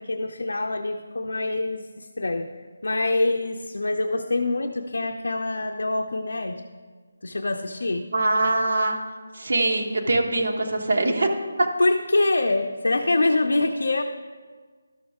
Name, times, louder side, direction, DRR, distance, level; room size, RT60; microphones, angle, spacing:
voice 1, 0.0-2.5 2.8-6.6 7.2-8.0 11.8-14.0, left 2 dB, 90° left, 4 dB, 0.5 m, -25 dB
voice 2, 8.1-9.0 9.3-11.3 11.6-11.7, right 2 dB, 50° right, 2 dB, 1.0 m, -22 dB
12.0 x 6.2 x 3.5 m, 1.5 s
hypercardioid pair, 175°, 0 cm